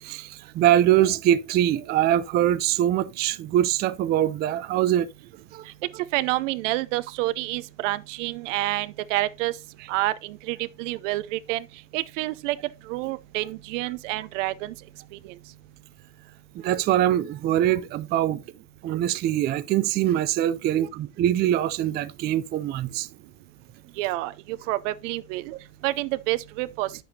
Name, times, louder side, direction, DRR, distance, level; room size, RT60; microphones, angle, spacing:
voice 1, 0.0-5.1 5.5-5.7 16.6-18.4 18.8-23.1, right 12 dB, 25° right, 0.4 m, -23 dB
voice 2, 6.1-9.5 9.9-11.6 11.9-12.6 12.9-14.7 15.2-15.3 24.0-25.5 25.8-26.9, right 18 dB, 70° right, 0.7 m, -28 dB
9.0 x 7.0 x 2.8 m
supercardioid pair, 115°, 38 cm